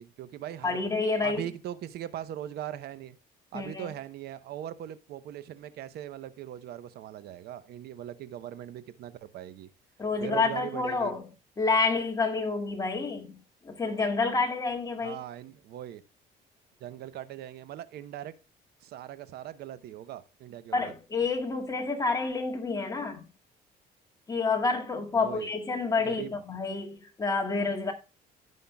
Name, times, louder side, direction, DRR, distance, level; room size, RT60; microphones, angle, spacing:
voice 1, 0.0-0.8 1.2-3.2 3.5-9.7 10.2-11.1 15.0-16.0 16.8-18.3 18.8-20.9 25.2-25.5 26.0-26.4, right 11 dB, 70° right, 0.8 m, -40 dB
voice 2, 0.6-1.5 3.5-3.9 10.0-11.2 11.6-15.2 20.7-23.3 24.3-27.9, left 4 dB, 20° left, 2.1 m, -29 dB
16.0 x 5.6 x 2.2 m
cardioid pair, 110°, 17 cm